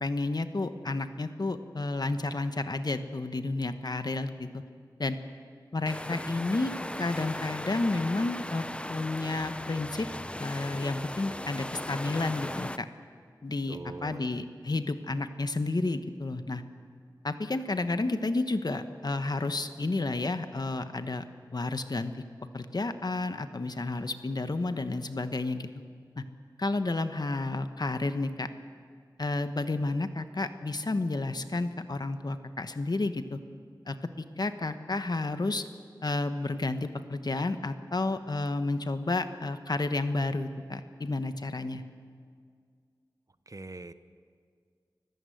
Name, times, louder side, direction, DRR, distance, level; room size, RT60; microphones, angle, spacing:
voice 1, 0.0-4.6 5.0-5.2 5.7-10.1 10.4-12.9 13.4-16.6 17.2-21.2 21.5-22.1 22.5-25.7 26.2-26.3 26.6-28.5 29.2-33.4 33.9-34.1 34.4-35.7 36.0-41.8, left 2 dB, 60° left, 9 dB, 1.1 m, -31 dB
sound 1, 5.8-12.8, left 1 dB, 15° left, 0.7 m, -38 dB
voice 2, 13.7-14.3 43.5-43.9, right 2 dB, 45° right, 12 dB, 0.8 m, -42 dB
25.0 x 15.0 x 7.9 m, 2.1 s
wide cardioid pair, 50°, 8 cm